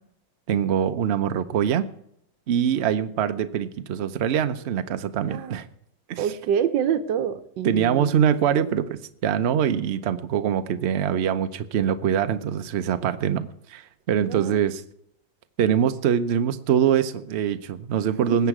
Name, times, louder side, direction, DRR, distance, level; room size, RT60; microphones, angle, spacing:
voice 1, 0.5-1.9 2.5-5.7 6.1-6.2 7.6-14.8 15.6-18.5, right 8 dB, 55° right, 10 dB, 0.7 m, -23 dB
voice 2, 6.2-8.2 14.2-14.6 18.2-18.4, right 8 dB, 80° right, 10 dB, 1.5 m, -27 dB
20.0 x 8.1 x 4.8 m, 0.73 s
omnidirectional pair, 1.9 m